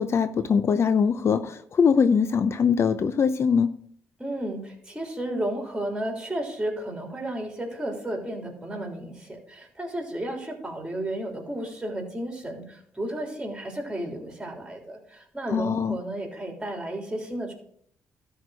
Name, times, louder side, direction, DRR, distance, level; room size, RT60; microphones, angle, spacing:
voice 1, 0.0-3.7 15.5-16.0, left 6 dB, 50° left, 12 dB, 0.6 m, -22 dB
voice 2, 4.2-17.5, right 1 dB, 15° right, 2 dB, 3.4 m, -33 dB
12.5 x 4.6 x 6.3 m, 0.65 s
cardioid pair, 70°, 6 cm